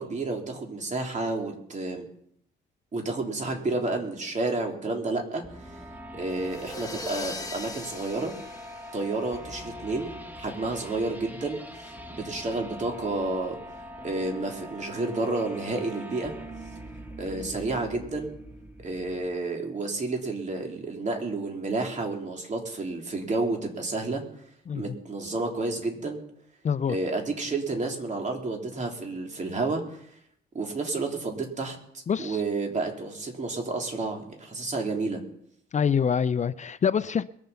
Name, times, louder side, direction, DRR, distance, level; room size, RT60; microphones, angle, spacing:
voice 1, 0.0-2.1 2.9-5.6 6.1-8.3 8.9-11.6 11.8-13.6 14.0-16.3 17.2-18.3 18.8-24.2 24.7-26.2 26.9-30.0 30.5-31.8 32.2-35.2, right 3 dB, 35° right, 3.6 m, -30 dB
sound 1, 5.4-19.4, equal, 10° right, 1.9 m, -43 dB
sound 2, 6.3-9.6, left 3 dB, 20° left, 1.8 m, -40 dB
voice 2, 26.6-27.0 32.1-32.4 35.7-37.2, left 7 dB, 35° left, 0.6 m, -25 dB
22.0 x 7.4 x 5.8 m
cardioid pair, 90°, 20 cm